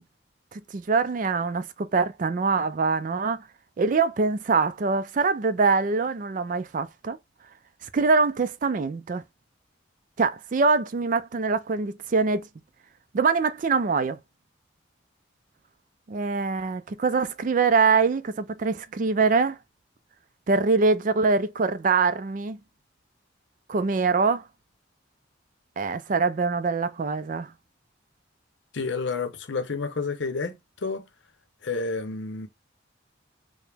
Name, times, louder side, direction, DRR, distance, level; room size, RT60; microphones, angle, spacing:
voice 1, 0.5-3.4 3.8-7.2 7.9-9.2 10.2-12.5 13.1-14.2 16.1-19.6 20.5-22.6 23.7-24.4 25.8-27.5, right 4 dB, 45° right, 0.4 m, -24 dB
voice 2, 28.7-31.1 31.6-32.5, left 4 dB, 70° left, 0.7 m, -30 dB
4.9 x 2.1 x 3.3 m
head